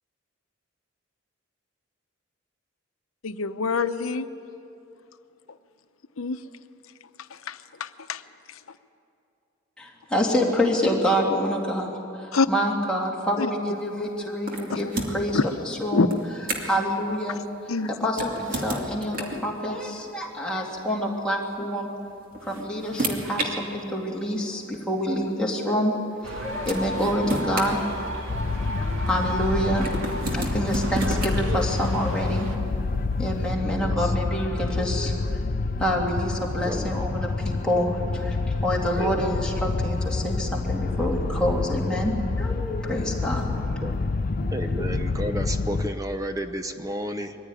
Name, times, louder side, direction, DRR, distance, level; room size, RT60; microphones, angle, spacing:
voice 1, 3.2-4.3 6.2-6.4 7.3-8.2 12.3-12.5 13.4-13.5 14.7-14.9 15.3-15.4 15.9-16.1 17.7-17.9, left 4 dB, 85° left, 11 dB, 0.8 m, -26 dB
voice 2, 9.8-11.9 12.1-15.4 15.6-16.1 16.6-21.9 22.4-25.9 26.2-28.0 28.8-29.9 30.3-32.5 33.2-35.4 35.8-43.5 44.4-44.9, equal, 5° left, -3 dB, 2.6 m, -27 dB
sound 1, 14.5-15.3 16.1-16.8 18.1-19.5 20.8-20.9 22.1-23.5 24.5-24.6 26.2-26.3 26.7-28.5 29.8-31.4, right 1 dB, 45° right, 2.6 m, -31 dB
sound 2, 26.2-32.6, equal, 75° right, 2.1 m, -35 dB
sound 3, 28.3-45.9, left 3 dB, 40° left, 0.5 m, -28 dB
voice 3, 33.6-34.0 36.6-37.0 39.0-39.4 43.8-44.0 44.5-47.4, equal, 15° right, 8 dB, 0.7 m, -32 dB
22.5 x 15.0 x 9.8 m, 2.8 s
head